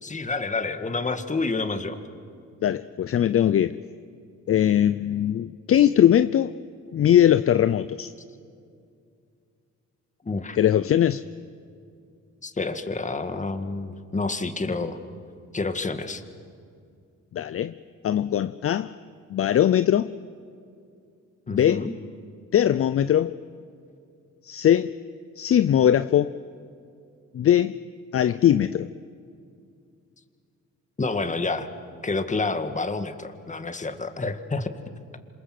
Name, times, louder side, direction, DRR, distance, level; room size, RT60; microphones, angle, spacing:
voice 1, 0.0-2.0 10.2-10.6 12.4-15.0 15.5-16.2 21.5-21.9 31.0-31.7 32.0-34.7, left 3 dB, 25° left, 8 dB, 2.0 m, -28 dB
voice 2, 2.6-3.8 4.5-6.6 6.9-8.1 10.6-11.2 17.3-17.7 18.0-18.9 19.3-20.1 21.5-21.9 22.5-23.3 24.4-24.9 25.4-26.3 27.3-27.8 28.1-28.9, left 10 dB, 50° left, 13 dB, 0.6 m, -20 dB
27.0 x 27.0 x 7.8 m, 2.4 s
cardioid pair, 90°, 30 cm